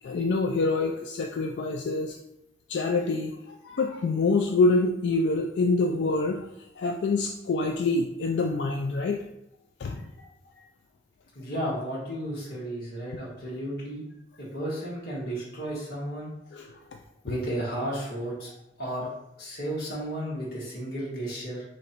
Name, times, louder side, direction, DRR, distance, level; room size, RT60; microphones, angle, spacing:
voice 1, 0.0-2.2 2.7-6.5 6.8-9.3 9.8-10.1 16.5-17.0, left 3 dB, 85° left, 2 dB, 0.4 m, -26 dB
voice 2, 11.3-14.0 14.4-16.3 17.2-18.5 18.8-19.1 19.4-21.6, right 1 dB, 55° left, -6 dB, 1.6 m, -33 dB
3.7 x 3.1 x 4.3 m, 0.83 s
head